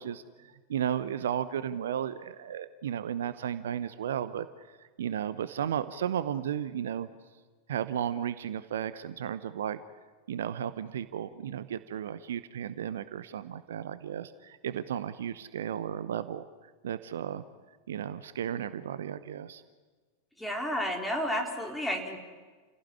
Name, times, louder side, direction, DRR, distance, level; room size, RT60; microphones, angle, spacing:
voice 1, 0.0-4.5 5.0-7.1 7.7-9.8 10.3-16.4 16.8-17.4 17.9-19.6, right 9 dB, 60° right, 14 dB, 0.9 m, -34 dB
voice 2, 20.4-22.2, equal, 5° left, 2 dB, 4.1 m, -31 dB
29.5 x 17.0 x 10.0 m, 1.4 s
figure-of-eight pair, 90°, 0 cm